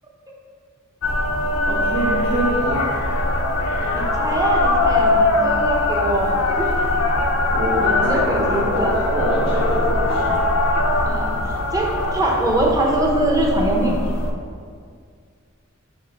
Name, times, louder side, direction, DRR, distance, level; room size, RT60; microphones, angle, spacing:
sound 1, 1.0-14.3, left 2 dB, 75° left, 0.6 m, -21 dB
voice 1, 1.7-2.9 7.5-10.4, equal, 75° right, -10 dB, 1.6 m, -24 dB
voice 2, 3.9-6.7 8.0-8.9 10.7-11.3 11.7-14.0, right 1 dB, 15° right, -1 dB, 0.8 m, -22 dB
6.1 x 3.5 x 5.2 m, 2.1 s
head